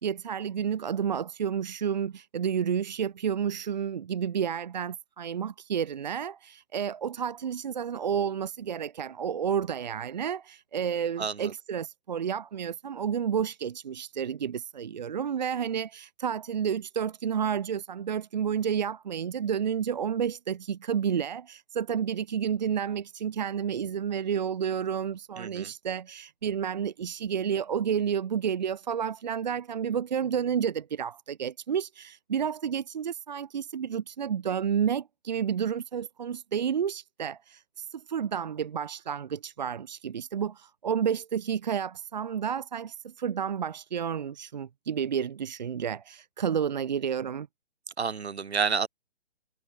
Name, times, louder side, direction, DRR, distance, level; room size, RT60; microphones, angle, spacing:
voice 1, 0.0-47.5, right 8 dB, 40° right, 1.6 m, -30 dB
voice 2, 11.2-11.5 25.4-25.7 48.0-48.9, right 5 dB, 65° right, 4.5 m, -29 dB
hypercardioid pair, 165°, 35 cm